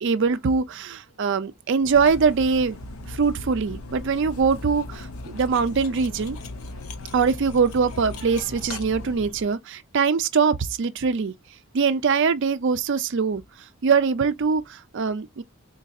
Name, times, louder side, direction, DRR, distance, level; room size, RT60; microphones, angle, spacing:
voice 1, 0.0-2.8 3.1-6.4 7.1-11.3 11.7-13.4 13.8-15.4, right 5 dB, 55° right, 0.4 m, -22 dB
Cutlery silverware, 1.8-9.5, left 2 dB, 75° left, 0.7 m, -38 dB
3.8 x 2.6 x 2.4 m
head